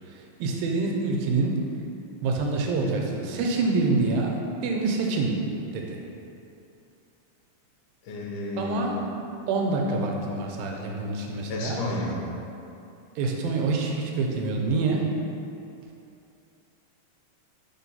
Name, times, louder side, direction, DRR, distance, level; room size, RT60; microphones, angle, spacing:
voice 1, 0.1-1.6 2.2-5.4 5.7-6.0 8.6-9.0 9.5-11.8 13.2-15.1, right 3 dB, 85° right, 0 dB, 2.3 m, -26 dB
voice 2, 8.0-9.0 11.5-12.2, left 2 dB, 75° left, -2 dB, 2.0 m, -32 dB
4.5 x 4.2 x 5.5 m, 2.7 s
omnidirectional pair, 4.1 m